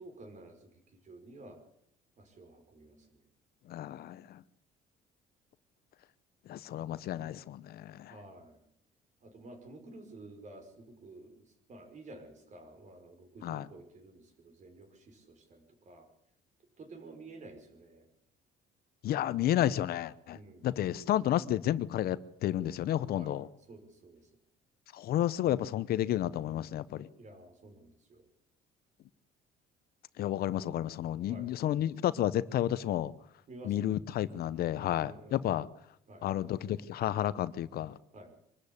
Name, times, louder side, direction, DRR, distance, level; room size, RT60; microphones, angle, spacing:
voice 1, 0.0-1.6 2.2-3.2 8.1-8.6 9.2-16.1 16.8-18.0 20.3-20.8 23.1-23.3 23.7-24.2 27.1-28.2 31.3-31.6 33.5-33.9 35.0-35.6 36.1-36.3 38.1-38.3, right 2 dB, 45° right, 5.3 m, -51 dB
voice 2, 3.7-4.4 6.5-8.2 13.4-13.7 19.0-20.4 20.6-23.5 24.9-27.1 30.2-33.1 33.6-35.7 36.2-38.0, left 12 dB, 65° left, 0.9 m, -31 dB
24.0 x 13.5 x 8.6 m
cardioid pair, 110°, 17 cm